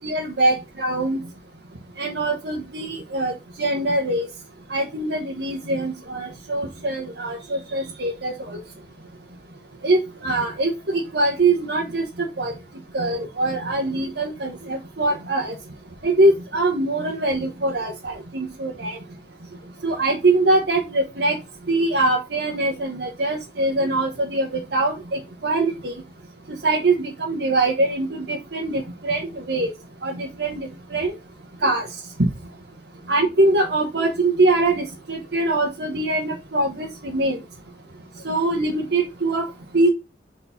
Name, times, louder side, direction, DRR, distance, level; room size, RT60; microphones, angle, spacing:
voice 1, 0.0-1.2 2.0-3.3 3.6-4.3 4.7-8.3 9.8-12.0 12.4-12.5 12.9-15.5 16.0-19.0 19.8-21.3 21.7-25.9 26.6-29.7 30.0-31.1 31.6-31.9 33.1-37.4 38.2-39.5 39.7-39.9, right 2 dB, 70° right, -1 dB, 1.1 m, -23 dB
4.3 x 4.2 x 5.6 m, 0.25 s
head